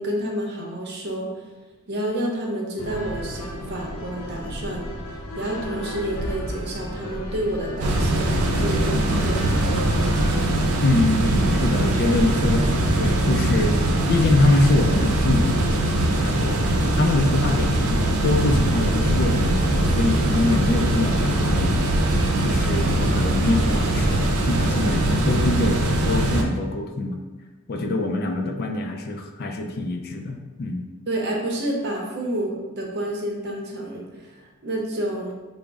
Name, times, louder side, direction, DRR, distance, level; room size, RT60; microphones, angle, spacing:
voice 1, 0.0-1.3 1.9-4.9 5.3-9.5 24.7-24.9 31.1-35.3, right 1 dB, 50° right, -1 dB, 0.7 m, -29 dB
sound 1, 2.8-10.3, equal, 75° left, 0.7 m, -33 dB
sound 2, 7.8-26.4, right 1 dB, 80° right, 0.6 m, -21 dB
voice 2, 10.8-13.8 14.1-15.6 15.9-16.6 17.0-21.8 22.4-27.2 27.7-30.9, left 2 dB, 45° left, 3 dB, 0.4 m, -24 dB
5.0 x 2.0 x 3.4 m, 1.2 s
head